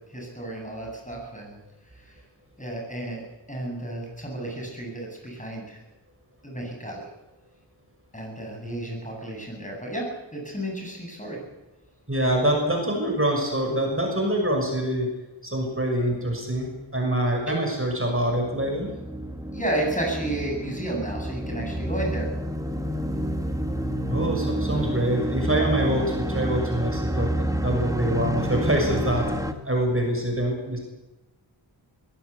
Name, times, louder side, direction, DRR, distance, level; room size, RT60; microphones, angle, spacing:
voice 1, 0.1-1.6 2.0-2.2 2.6-3.2 3.5-5.8 6.4-7.1 8.1-11.4 17.5-17.6 19.5-22.3, right 1 dB, 15° left, 0 dB, 8.0 m, -32 dB
voice 2, 12.1-15.1 15.4-18.9 24.1-29.2 29.6-30.8, right 1 dB, 30° right, 1 dB, 6.5 m, -25 dB
sound 1, 18.4-29.5, equal, 5° right, 1.8 m, -29 dB
22.0 x 17.0 x 8.4 m, 1.1 s
wide cardioid pair, 50°, 45 cm